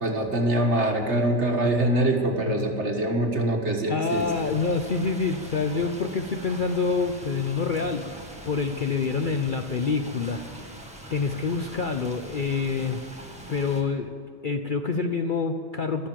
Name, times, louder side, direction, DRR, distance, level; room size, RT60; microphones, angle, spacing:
voice 1, 0.0-4.3, right 1 dB, 45° right, 2 dB, 1.7 m, -24 dB
voice 2, 3.9-10.4 11.1-13.0 13.5-14.1 14.4-16.1, left 4 dB, 90° left, 6 dB, 0.4 m, -27 dB
sound 1, 4.0-13.8, right 1 dB, 5° right, 1.8 m, -42 dB
13.0 x 13.0 x 7.6 m, 2.5 s
omnidirectional pair, 1.8 m